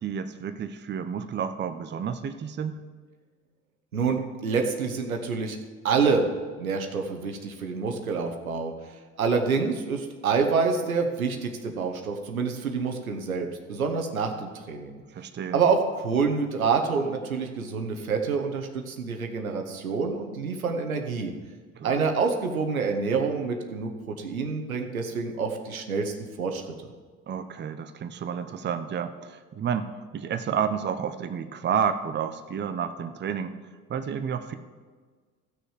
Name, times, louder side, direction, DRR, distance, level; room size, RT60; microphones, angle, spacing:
voice 1, 0.0-2.8 15.1-15.6 21.7-22.1 27.3-33.5 33.9-34.5, right 7 dB, 25° right, 9 dB, 0.7 m, -30 dB
voice 2, 3.9-5.6 5.8-6.3 6.6-15.0 15.5-21.3 21.8-26.9, right 5 dB, 85° right, 4 dB, 1.1 m, -27 dB
15.0 x 6.4 x 4.9 m, 1.5 s
figure-of-eight pair, 65°, 41 cm